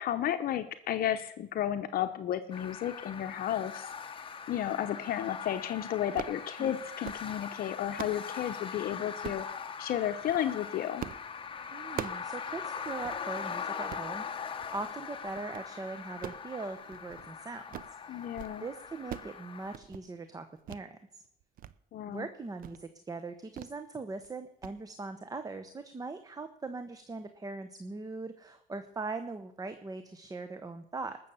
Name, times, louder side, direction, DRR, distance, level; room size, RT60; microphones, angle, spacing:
voice 1, 0.0-3.9 4.5-9.4 9.8-11.1 18.1-18.6 21.9-22.3, left 11 dB, 60° left, 8 dB, 0.8 m, -33 dB
sound 1, 2.5-19.8, left 6 dB, 30° left, 1.1 m, -41 dB
sound 2, 6.0-6.4 6.8-7.3 7.7-8.2 9.2-9.5 10.1-10.4 11.0-11.3 11.6-12.3 12.6-12.7 13.0-13.2 13.7-14.1 14.6-14.9 15.2-15.7 16.1-17.3 17.6-18.0 18.2-18.6 18.8-19.4 19.6-20.0 20.7-20.8 21.2-21.7 22.1-22.2 22.6-22.8 23.6-23.8 24.1-24.3 24.6-24.8, right 11 dB, 55° right, 0.6 m, -43 dB
voice 2, 11.7-17.8 18.0-18.3 18.6-21.2 22.1-31.2, right 3 dB, 20° right, 9 dB, 0.9 m, -41 dB
19.5 x 7.0 x 7.0 m, 0.72 s
cardioid pair, 110°, 17 cm